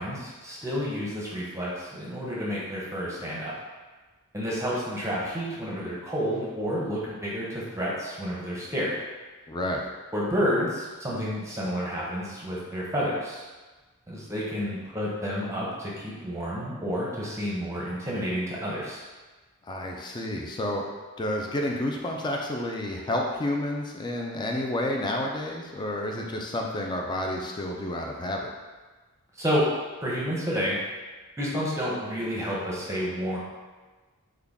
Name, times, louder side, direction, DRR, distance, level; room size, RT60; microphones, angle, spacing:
voice 1, 0.0-3.5 4.3-8.9 10.1-13.4 14.1-19.0 29.3-29.7 30.0-30.8 31.4-33.4, equal, 15° right, -6 dB, 0.7 m, -30 dB
voice 2, 9.5-9.9 19.7-20.8 21.2-28.5, left 1 dB, 20° left, 0 dB, 0.3 m, -30 dB
3.7 x 2.2 x 3.5 m, 1.3 s
head